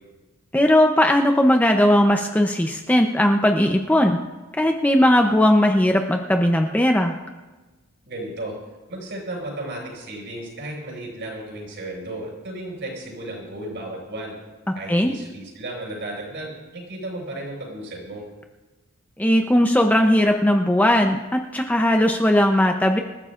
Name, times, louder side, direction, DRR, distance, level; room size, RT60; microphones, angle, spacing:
voice 1, 0.5-4.2 4.6-7.1 14.9-15.1 19.2-23.0, left 1 dB, 10° left, 3 dB, 0.6 m, -18 dB
voice 2, 8.0-8.5 8.9-14.3 14.7-18.2, right 1 dB, 55° right, -2 dB, 6.0 m, -34 dB
26.5 x 14.0 x 2.5 m, 1.2 s
head